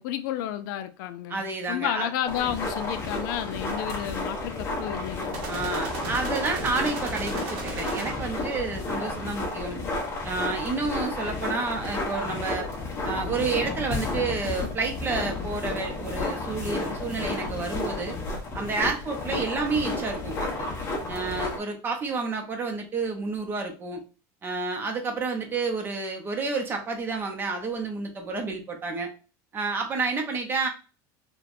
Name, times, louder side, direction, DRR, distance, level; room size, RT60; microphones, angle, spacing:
voice 1, 0.0-5.3, left 11 dB, 75° left, 0.4 m, -31 dB
voice 2, 1.3-2.1 5.5-9.8 10.2-12.7 13.0-18.2 18.5-20.7 21.1-24.0 24.4-29.1 29.5-30.7, right 4 dB, 20° right, 0.6 m, -30 dB
sound 1, 2.2-21.6, left 2 dB, 25° left, 1.1 m, -32 dB
sound 2, 5.3-8.5, right 4 dB, 60° right, 0.9 m, -36 dB
4.3 x 2.2 x 2.5 m
cardioid pair, 165°, 11 cm